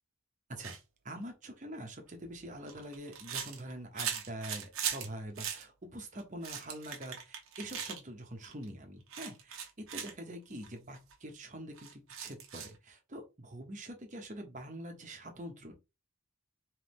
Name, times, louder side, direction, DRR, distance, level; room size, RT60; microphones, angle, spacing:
sound 1, 0.6-0.8 2.1-5.1 5.4-5.6 6.2-8.0 8.4-8.7 9.1-10.1 10.6-10.7 10.9-11.1 11.8-12.8, right 8 dB, 80° right, 1.0 m, -39 dB
voice 1, 1.0-9.6 9.9-15.7, right 1 dB, 35° right, 1.0 m, -45 dB
3.5 x 3.3 x 3.1 m
head